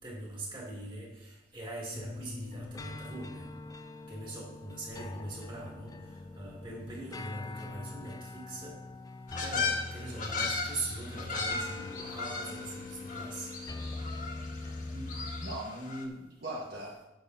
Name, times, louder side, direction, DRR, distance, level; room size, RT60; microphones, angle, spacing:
voice 1, 0.0-3.5 4.1-8.8 9.4-13.5, right 2 dB, 25° right, -4 dB, 2.5 m, -42 dB
sound 1, 1.9-15.6, left 2 dB, 20° left, 0.4 m, -43 dB
sound 2, 9.3-16.1, left 4 dB, 45° left, 1.6 m, -37 dB
voice 2, 14.9-17.0, right 1 dB, 55° right, -3 dB, 1.4 m, -40 dB
15.5 x 6.5 x 2.7 m, 0.95 s
head